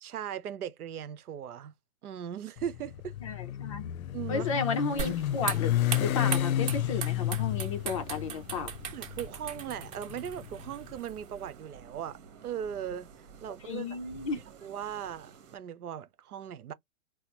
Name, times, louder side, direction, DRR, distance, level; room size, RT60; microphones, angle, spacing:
voice 1, 0.0-1.7 2.0-3.1 4.1-4.7 8.9-13.1 13.4-14.0 14.6-16.7, right 9 dB, 85° right, 0.8 m, -38 dB
Motorcycle, 2.6-10.8, left 12 dB, 75° left, 0.6 m, -31 dB
voice 2, 3.2-3.9 4.3-8.7 13.6-14.4, left 4 dB, 25° left, 0.4 m, -33 dB
sound 1, 4.9-15.6, right 5 dB, 60° right, 1.3 m, -51 dB
sound 2, 5.0-11.6, right 7 dB, 30° right, 1.4 m, -39 dB
4.2 x 2.0 x 2.9 m
hypercardioid pair, 145°, 43 cm